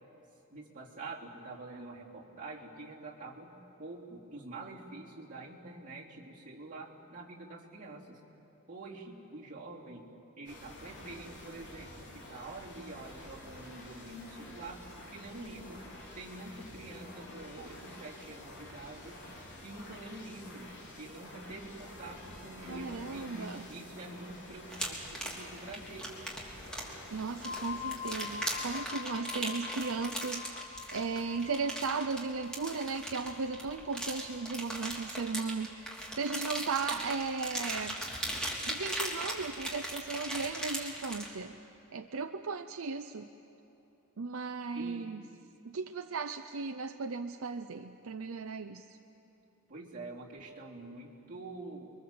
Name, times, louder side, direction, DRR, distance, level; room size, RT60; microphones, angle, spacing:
voice 1, 0.5-3.5 3.8-8.2 8.7-10.1 10.4-15.8 16.1-19.2 19.6-20.7 21.0-26.1 44.7-45.1 49.7-51.9, right 2 dB, 40° right, -5 dB, 3.8 m, -46 dB
sound 1, 10.5-28.8, left 1 dB, 55° left, 4.3 m, -49 dB
voice 2, 22.6-23.7 27.1-38.0 38.6-41.6 41.9-43.3 44.2-45.2 45.6-49.0, right 4 dB, 65° right, 7 dB, 0.7 m, -36 dB
sound 2, 24.7-41.3, right 1 dB, 5° left, 3.5 m, -38 dB
sound 3, 27.4-37.1, left 7 dB, 35° left, 3.5 m, -46 dB
30.0 x 23.5 x 7.7 m, 2.9 s
head